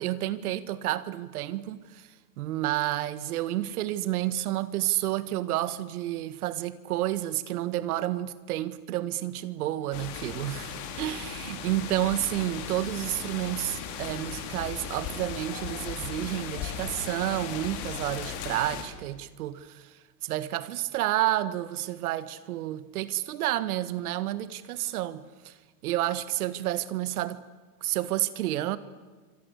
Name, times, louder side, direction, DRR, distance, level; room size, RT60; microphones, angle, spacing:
voice 1, 0.0-2.1 2.4-19.9 20.2-25.6 25.8-27.4 27.8-28.8, right 14 dB, 70° right, 1.9 m, -30 dB
sound 1, 9.9-18.8, left 7 dB, 40° left, 4.3 m, -37 dB
26.5 x 26.0 x 8.4 m
supercardioid pair, 160°, 46 cm